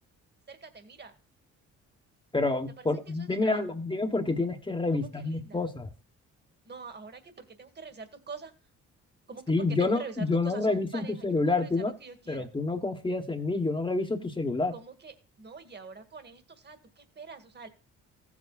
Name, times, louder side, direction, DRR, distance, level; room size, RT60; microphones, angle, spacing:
voice 1, 0.5-1.1 2.8-3.8 4.9-5.6 6.7-8.5 9.3-12.5 14.7-17.7, right 5 dB, 35° right, 7 dB, 2.0 m, -45 dB
voice 2, 2.3-5.9 9.5-11.9 12.3-14.7, left 3 dB, 15° left, 5 dB, 1.4 m, -28 dB
15.0 x 8.4 x 2.4 m, 0.35 s
cardioid pair, 90°, 30 cm